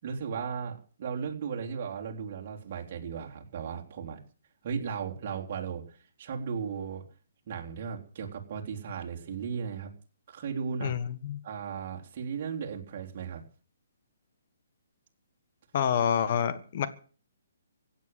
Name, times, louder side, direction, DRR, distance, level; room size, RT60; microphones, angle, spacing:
voice 1, 0.0-4.2 4.6-7.0 7.5-9.9 10.3-11.0 11.4-13.4, right 6 dB, 45° right, 3.7 m, -36 dB
voice 2, 10.8-11.4 15.7-16.9, left 8 dB, 45° left, 1.5 m, -27 dB
16.5 x 9.4 x 7.9 m
hypercardioid pair, 155°, 0 cm